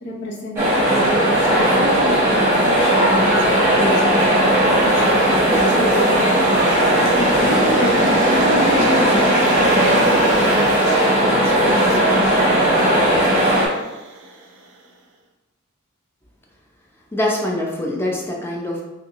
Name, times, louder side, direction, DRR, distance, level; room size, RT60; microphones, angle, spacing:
voice 1, 0.0-4.9 5.4-6.4 7.0-10.7 11.2-12.4, equal, 55° left, -2 dB, 0.7 m, -29 dB
sound 1, 0.6-13.7, right 1 dB, 10° right, 1.0 m, -16 dB
sound 2, 4.3-14.6, right 1 dB, 55° right, 0.5 m, -30 dB
voice 2, 17.1-18.8, left 1 dB, 10° left, -1 dB, 0.5 m, -23 dB
3.3 x 2.7 x 2.9 m, 1.1 s
head